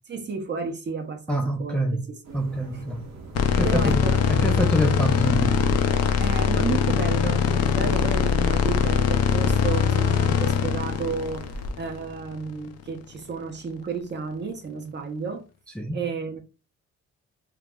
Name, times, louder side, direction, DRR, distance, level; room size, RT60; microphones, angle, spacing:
voice 1, 0.1-1.8 2.1-2.4 2.7-2.8 3.6-4.2 6.2-11.5 11.8-15.5 15.9-16.4, right 5 dB, 35° right, 0.8 m, -32 dB
voice 2, 1.3-2.0 2.3-3.1 3.5-5.6 15.8-16.0, right 1 dB, 5° left, 0.4 m, -26 dB
sound 1, 2.2-11.7, right 1 dB, 65° right, 0.8 m, -38 dB
sound 2, 3.3-12.5, left 7 dB, 55° left, 0.5 m, -22 dB
2.3 x 2.0 x 3.5 m
cardioid pair, 90°, 30 cm